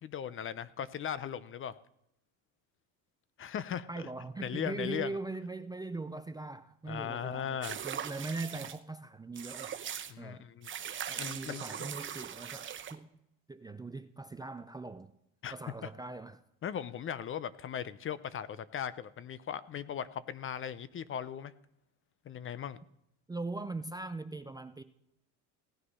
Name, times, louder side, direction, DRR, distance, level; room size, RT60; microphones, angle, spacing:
voice 1, 0.0-1.8 3.4-4.1 4.4-5.1 6.9-7.8 10.1-10.7 11.2-11.6 15.4-15.5 16.6-21.5 22.2-22.8, left 9 dB, 35° left, 0.6 m, -38 dB
voice 2, 3.9-9.8 10.2-10.5 11.1-13.1 13.5-15.1 15.5-16.4 23.3-24.8, right 3 dB, 10° right, 0.4 m, -41 dB
sound 1, 7.6-8.8 9.4-10.1 10.6-13.0, right 9 dB, 30° right, 0.9 m, -40 dB
17.0 x 9.9 x 5.5 m
supercardioid pair, 110°, 37 cm